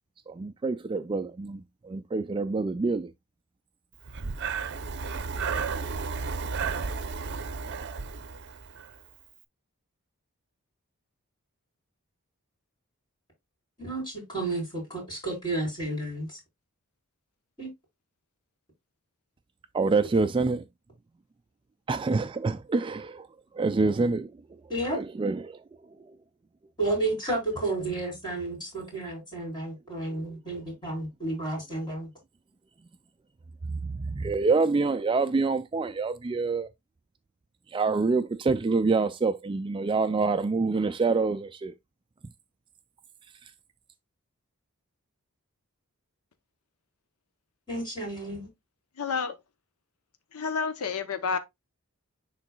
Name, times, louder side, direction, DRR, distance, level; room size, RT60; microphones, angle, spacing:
voice 1, 0.3-3.1 19.7-20.6 21.9-23.3 23.5-24.3 24.9-25.6 26.0-26.2 30.1-30.2 33.6-36.7 37.7-41.7 43.4-43.5, right 4 dB, 25° right, 0.3 m, -26 dB
Breathing, 4.0-9.0, right 5 dB, 55° right, 0.7 m, -33 dB
voice 2, 13.8-16.4 17.6-17.7 24.7-25.0 26.8-32.1 47.7-48.5, right 2 dB, 20° left, 4.6 m, -31 dB
voice 3, 49.0-49.3 50.3-51.4, left 5 dB, 90° left, 0.8 m, -29 dB
10.5 x 3.9 x 2.3 m
head